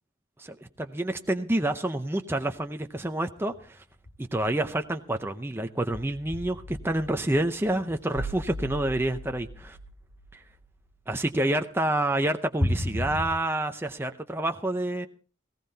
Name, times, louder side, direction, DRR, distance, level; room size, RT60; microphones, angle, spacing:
voice 1, 0.4-3.8 4.2-9.8 10.3-10.4 11.1-15.1, right 1 dB, 10° right, 6 dB, 0.6 m, -28 dB
sound 1, 3.6-3.7 3.9-4.5 4.7-4.8 5.9-10.9 12.6-13.3, equal, 70° left, 3.0 m, -35 dB
18.5 x 17.0 x 2.8 m, 0.38 s
head